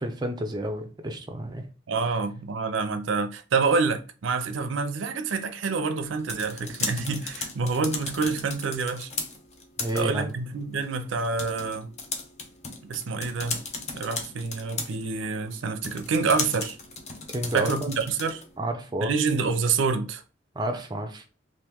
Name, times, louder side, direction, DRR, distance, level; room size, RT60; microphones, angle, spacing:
voice 1, 0.0-1.6 9.8-10.3 17.3-17.9 18.6-19.1 20.5-21.2, right 1 dB, 20° right, 0.5 m, -30 dB
voice 2, 1.9-9.1 9.9-11.9 12.8-13.6 13.9-16.8 17.5-18.4 19.0-20.2, right 4 dB, 75° right, 0.5 m, -27 dB
sound 1, 6.0-18.5, left 4 dB, 35° left, 0.6 m, -37 dB
2.9 x 2.6 x 3.4 m
head